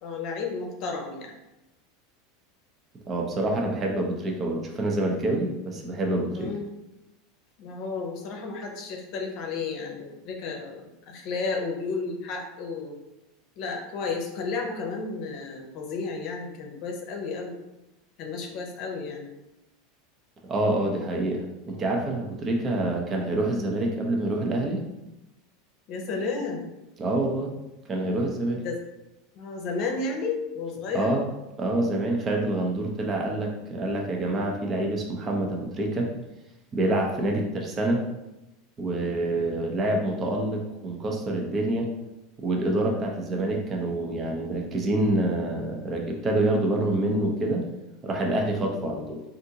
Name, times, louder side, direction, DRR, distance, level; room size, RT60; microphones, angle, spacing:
voice 1, 0.0-1.3 6.3-6.7 7.6-12.9 13.6-17.6 18.2-19.3 25.9-26.6 28.6-28.8 29.3-31.1 37.1-37.4 48.6-48.9, left 4 dB, 55° left, 1 dB, 0.7 m, -32 dB
voice 2, 3.1-6.5 20.4-24.8 27.0-27.5 27.9-28.6 30.9-31.2 31.6-36.1 36.7-38.0 38.8-41.9 42.4-47.7 48.0-49.2, right 1 dB, 30° right, 1 dB, 0.7 m, -26 dB
3.4 x 2.6 x 2.8 m, 0.95 s
hypercardioid pair, 100°, 0 cm